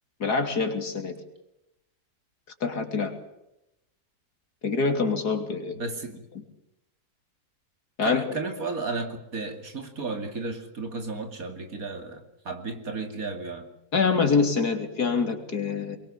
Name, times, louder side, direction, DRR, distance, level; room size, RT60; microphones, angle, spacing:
voice 1, 0.2-1.2 2.6-3.1 4.6-5.8 6.4-6.5 8.0-8.4 13.9-16.0, left 4 dB, 70° left, 6 dB, 3.5 m, -25 dB
voice 2, 5.7-6.2 8.0-13.7, right 3 dB, 55° right, 6 dB, 3.1 m, -34 dB
24.0 x 22.5 x 7.4 m, 0.86 s
omnidirectional pair, 1.7 m